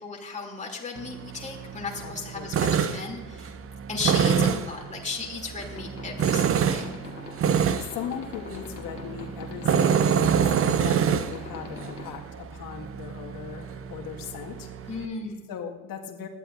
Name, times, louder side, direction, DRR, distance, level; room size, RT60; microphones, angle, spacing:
voice 1, 0.0-3.5 3.9-6.9 14.9-15.4, left 4 dB, 15° left, -1 dB, 2.8 m, -35 dB
Tools, 1.0-15.1, right 7 dB, 30° right, 0.8 m, -27 dB
voice 2, 2.0-2.7 7.3-7.4 7.8-14.7 15.5-16.3, left 7 dB, 45° left, 1 dB, 1.9 m, -38 dB
sound 1, 5.6-12.1, left 4 dB, 85° left, 1.7 m, -43 dB
20.5 x 13.5 x 2.6 m, 1.2 s
figure-of-eight pair, 65°, 46 cm